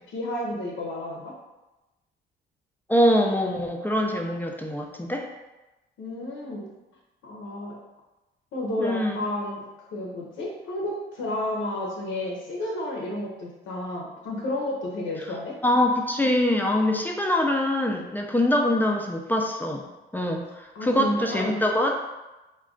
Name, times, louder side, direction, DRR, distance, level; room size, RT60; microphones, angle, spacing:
voice 1, 0.1-1.3 6.0-6.7 7.2-7.8 8.5-15.6 20.7-21.6, left 1 dB, 80° left, -2 dB, 0.6 m, -31 dB
voice 2, 2.9-5.3 8.8-9.2 15.6-19.8 20.1-21.9, left 1 dB, 10° left, 1 dB, 0.3 m, -24 dB
2.3 x 2.2 x 3.6 m, 1.1 s
cardioid pair, 90°, 20 cm